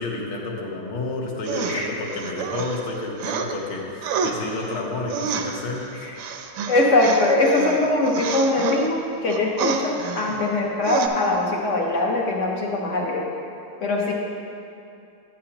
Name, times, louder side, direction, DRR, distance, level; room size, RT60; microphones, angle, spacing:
voice 1, 0.0-6.1, left 2 dB, 90° left, -2 dB, 2.1 m, -30 dB
sound 1, 1.4-3.5 4.0-8.9 9.3-10.6 10.8-11.1, right 6 dB, 75° right, 1.3 m, -29 dB
voice 2, 6.7-13.3 13.8-14.1, left 2 dB, 60° left, -1 dB, 0.8 m, -22 dB
11.5 x 8.5 x 2.9 m, 2.6 s
omnidirectional pair, 2.3 m